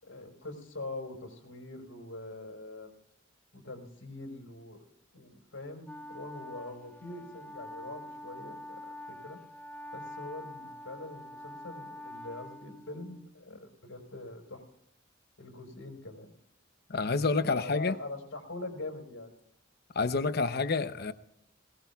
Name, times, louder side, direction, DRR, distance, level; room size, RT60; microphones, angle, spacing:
voice 1, 0.0-2.9 3.5-4.8 5.1-8.8 9.1-9.4 9.9-14.7 15.4-16.3 17.4-19.3, left 2 dB, 80° left, 4.8 m, -43 dB
Wind instrument woodwind instrument, 5.8-13.4, left 1 dB, 10° left, 0.7 m, -45 dB
voice 2, 16.9-17.9 20.0-21.1, left 4 dB, 50° left, 0.8 m, -28 dB
22.0 x 19.5 x 2.4 m
head